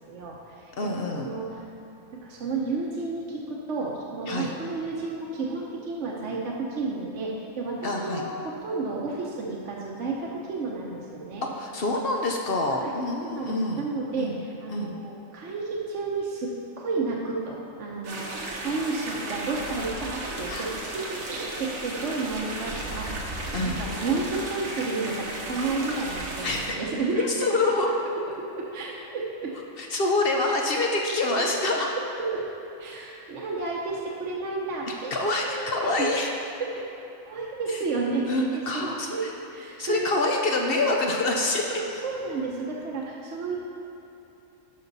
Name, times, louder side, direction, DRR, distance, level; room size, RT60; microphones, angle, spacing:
voice 1, 0.1-1.5 2.2-11.4 12.8-12.9 13.2-14.3 14.6-23.1 23.6-27.2 27.6-27.9 28.4-29.5 31.4-31.6 32.2-32.5 32.8-35.7 36.0-36.1 36.7-36.8 37.2-39.2 39.5-40.1 41.7-43.6, right 3 dB, 60° right, -3 dB, 1.2 m, -32 dB
voice 2, 0.8-1.3 4.3-4.5 7.8-8.2 11.4-13.9 14.2-14.4 14.7-15.0 20.5-20.7 23.5-23.8 26.4-26.8 27.1-27.9 29.8-31.9 35.1-36.3 37.7-37.8 38.3-39.3 39.8-41.6, left 2 dB, 55° left, 1 dB, 0.8 m, -26 dB
sound 1, 18.0-26.7, right 2 dB, 80° right, 1.5 m, -34 dB
11.0 x 5.7 x 4.0 m, 2.9 s
omnidirectional pair, 1.4 m